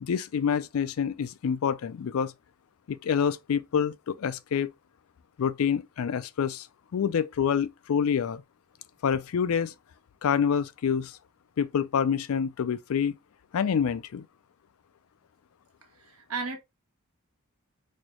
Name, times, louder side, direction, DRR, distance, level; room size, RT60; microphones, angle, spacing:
voice 1, 0.0-2.3 2.9-4.7 5.4-6.7 6.9-8.4 9.0-9.7 10.2-11.1 11.6-13.1 13.5-14.3, left 7 dB, 70° left, 0.4 m, -27 dB
voice 2, 15.9-16.6, right 4 dB, 85° right, 1.2 m, -34 dB
4.3 x 2.4 x 3.0 m
head